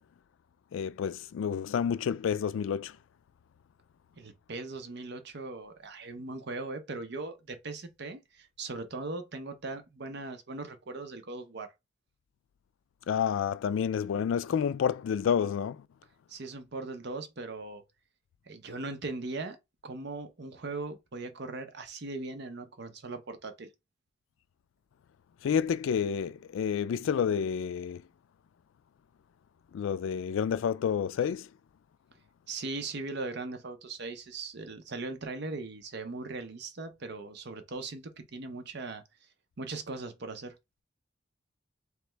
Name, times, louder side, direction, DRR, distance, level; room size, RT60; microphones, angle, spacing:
voice 1, 0.7-3.0 13.1-15.8 25.4-28.0 29.7-31.5, left 7 dB, 80° left, 0.3 m, -29 dB
voice 2, 4.2-11.7 16.3-17.8 18.5-19.6 19.8-23.7 32.5-39.0 39.6-40.6, right 3 dB, 60° right, 0.7 m, -39 dB
3.3 x 3.1 x 3.3 m
head